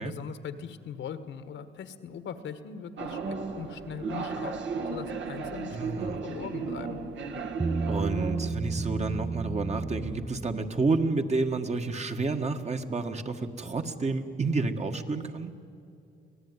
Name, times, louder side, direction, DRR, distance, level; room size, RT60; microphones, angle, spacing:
voice 1, 0.0-4.5 4.9-7.0, left 7 dB, 70° left, 11 dB, 1.5 m, -40 dB
sound 1, 3.0-8.5, right 4 dB, 70° right, 2.1 m, -34 dB
voice 2, 5.7-6.2 7.9-15.5, right 3 dB, 35° right, 6 dB, 1.6 m, -30 dB
Bass guitar, 7.6-11.0, right 4 dB, 15° right, 0.6 m, -32 dB
24.5 x 17.5 x 9.7 m, 2.6 s
cardioid pair, 90°, 20 cm